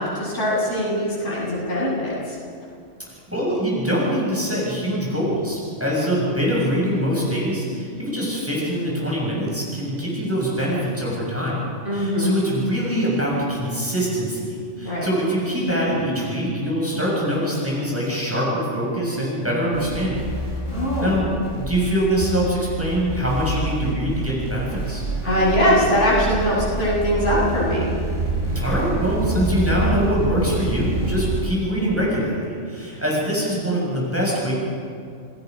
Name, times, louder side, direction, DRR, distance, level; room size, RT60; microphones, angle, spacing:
voice 1, 0.0-2.4 11.8-12.3 14.8-15.1 20.7-21.1 25.2-27.9, equal, 70° left, -6 dB, 8.2 m, -21 dB
voice 2, 3.3-11.7 11.9-20.3 21.0-25.0 28.6-34.5, equal, 10° right, -5 dB, 7.0 m, -23 dB
sound 1, 19.7-31.4, right 2 dB, 85° right, 5.5 m, -27 dB
28.0 x 20.0 x 5.4 m, 2.3 s
omnidirectional pair, 1.3 m